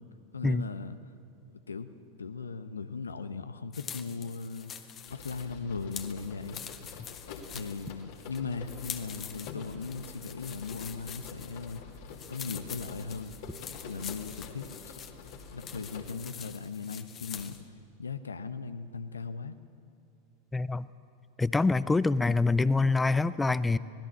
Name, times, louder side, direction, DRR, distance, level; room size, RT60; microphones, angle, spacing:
voice 1, 0.3-1.0 1.5-1.9 2.2-4.7 5.1-6.6 7.5-11.8 12.3-13.4 13.8-15.0 15.5-17.6 18.0-19.6, left 4 dB, 75° left, 11 dB, 1.1 m, -38 dB
sound 1, 3.7-17.7, left 8 dB, 30° left, 1.4 m, -45 dB
sound 2, 5.1-16.1, left 5 dB, 50° left, 2.9 m, -47 dB
voice 2, 20.5-20.9 21.4-23.8, left 3 dB, 10° left, 17 dB, 0.6 m, -25 dB
25.5 x 19.0 x 7.4 m, 2.5 s
figure-of-eight pair, 90°, 0 cm